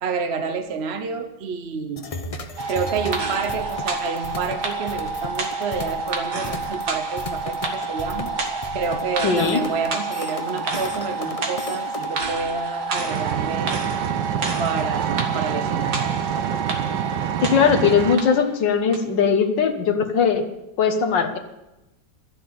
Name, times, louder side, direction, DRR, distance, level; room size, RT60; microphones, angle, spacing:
voice 1, 0.0-2.1 2.7-8.3 8.7-13.7 14.6-16.1, right 5 dB, 50° right, 7 dB, 0.9 m, -29 dB
sound 1, 2.0-12.1, left 2 dB, 30° left, 0.7 m, -35 dB
sound 2, 2.6-18.5 18.9-19.0, right 3 dB, 65° right, 2.3 m, -29 dB
voice 2, 9.2-9.6 17.4-20.4 20.8-21.4, left 6 dB, 90° left, 6 dB, 1.9 m, -19 dB
Engine, 13.1-18.1, right 10 dB, 80° right, 1.3 m, -27 dB
12.5 x 7.7 x 9.3 m, 0.96 s
omnidirectional pair, 1.9 m